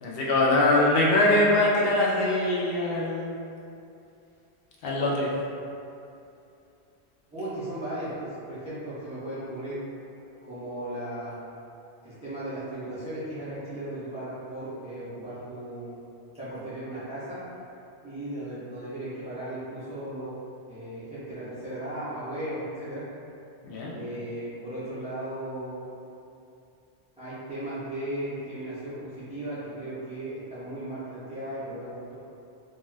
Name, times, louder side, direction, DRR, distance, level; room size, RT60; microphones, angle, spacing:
voice 1, 0.0-3.3 4.8-5.3 23.6-24.0, left 2 dB, 70° left, -4 dB, 0.7 m, -23 dB
voice 2, 7.3-9.8 10.2-11.3 12.0-16.0 16.3-17.4 18.0-20.3 20.7-23.0 23.9-25.8 27.2-32.1, right 1 dB, 10° right, -12 dB, 0.3 m, -36 dB
2.3 x 2.3 x 3.1 m, 2.6 s
omnidirectional pair, 1.1 m